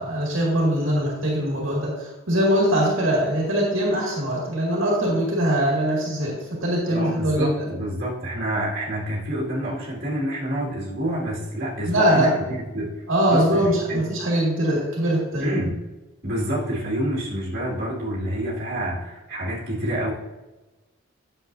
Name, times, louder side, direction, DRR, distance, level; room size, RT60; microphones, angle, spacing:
voice 1, 0.0-7.7 11.9-12.3 13.1-15.6, right 1 dB, 65° right, -3 dB, 2.2 m, -22 dB
voice 2, 6.9-13.0 13.3-14.1 15.4-15.8 16.2-20.1, right 1 dB, 45° right, -6 dB, 2.4 m, -28 dB
9.9 x 7.0 x 2.7 m, 1.1 s
head